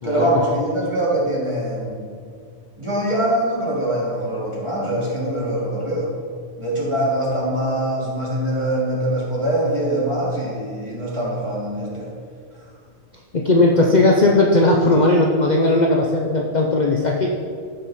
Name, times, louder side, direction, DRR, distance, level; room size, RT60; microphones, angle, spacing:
voice 1, 0.0-2.0 2.8-6.1 6.6-12.1, right 1 dB, 25° right, -7 dB, 2.5 m, -23 dB
voice 2, 13.3-17.3, left 2 dB, 45° left, -1 dB, 0.7 m, -17 dB
13.5 x 5.5 x 4.2 m, 2.2 s
omnidirectional pair, 1.3 m